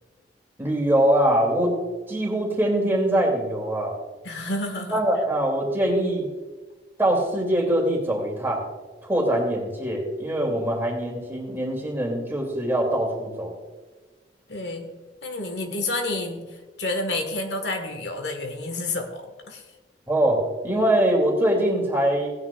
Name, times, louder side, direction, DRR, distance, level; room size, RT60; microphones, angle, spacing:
voice 1, 0.6-1.8 2.1-4.0 4.9-6.3 7.0-8.6 9.0-13.6 20.1-22.3, right 1 dB, 15° right, -1 dB, 2.6 m, -23 dB
voice 2, 4.2-5.0 14.5-14.9 15.2-19.7, left 2 dB, 70° left, 4 dB, 1.5 m, -30 dB
17.5 x 9.6 x 2.4 m, 1.3 s
head